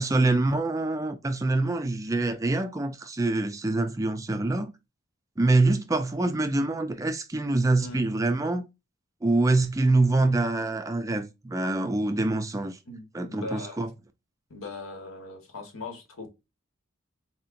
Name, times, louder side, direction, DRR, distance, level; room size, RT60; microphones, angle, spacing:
voice 1, 0.0-4.7 5.4-8.6 9.2-12.8 13.1-13.9, right 2 dB, 15° right, 0.3 m, -25 dB
voice 2, 12.9-13.8 14.5-16.3, left 2 dB, 85° left, 1.1 m, -39 dB
4.2 x 2.8 x 2.5 m
head